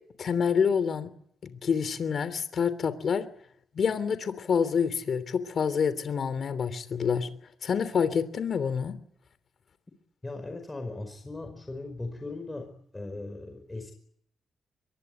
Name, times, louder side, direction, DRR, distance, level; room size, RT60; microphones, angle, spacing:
voice 1, 0.2-1.1 1.4-3.2 3.7-7.3 7.6-9.0, left 6 dB, 55° left, 13 dB, 3.1 m, -27 dB
voice 2, 10.2-13.9, left 2 dB, 15° left, 5 dB, 5.0 m, -38 dB
25.0 x 22.0 x 9.1 m, 0.69 s
cardioid pair, 110°, 0 cm